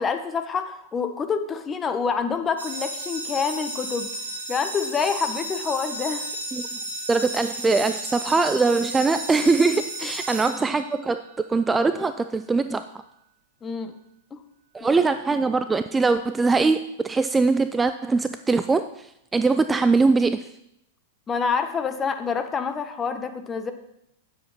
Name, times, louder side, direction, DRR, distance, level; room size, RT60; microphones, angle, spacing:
voice 1, 0.0-4.1 4.5-6.3 13.6-14.0 14.3-14.4 16.0-16.1 21.3-23.7, left 5 dB, 20° left, 8 dB, 1.1 m, -27 dB
sound 1, 2.6-11.2, right 1 dB, 85° right, 2.1 m, -33 dB
voice 2, 7.1-11.2 11.5-12.8 14.7-19.1 19.3-20.5, right 4 dB, 15° right, 10 dB, 0.4 m, -22 dB
9.1 x 7.7 x 5.8 m, 0.79 s
hypercardioid pair, 100°, 0 cm